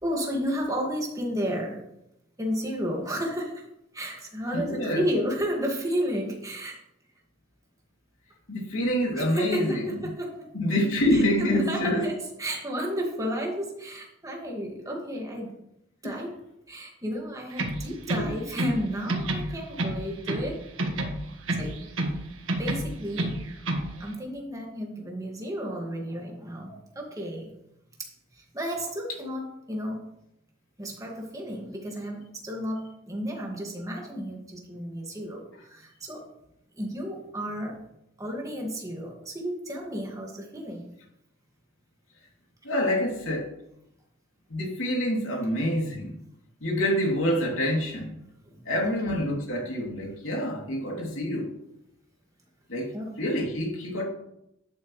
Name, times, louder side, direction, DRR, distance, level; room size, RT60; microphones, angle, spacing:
voice 1, 0.0-1.8 2.4-3.7 3.9-6.8 9.1-10.5 11.1-15.5 16.0-16.3 16.7-20.6 21.5-21.8 22.6-23.3 24.0-27.5 28.3-30.0 30.8-36.3 36.8-37.8 38.2-40.9 48.4-48.9 52.9-53.2, equal, 15° right, 0 dB, 2.0 m, -32 dB
voice 2, 4.5-5.1 8.5-10.1 10.5-12.1 16.0-16.1 18.1-18.3 19.1-19.3 26.7-26.8 42.6-43.5 44.5-46.2 46.6-48.2 48.6-51.5 52.7-54.0, equal, 90° left, -1 dB, 3.0 m, -27 dB
sound 1, 17.5-18.8 19.1-20.5 20.8-22.2 22.5-23.9, right 1 dB, 90° right, 1.5 m, -29 dB
11.5 x 8.5 x 3.2 m, 0.82 s
head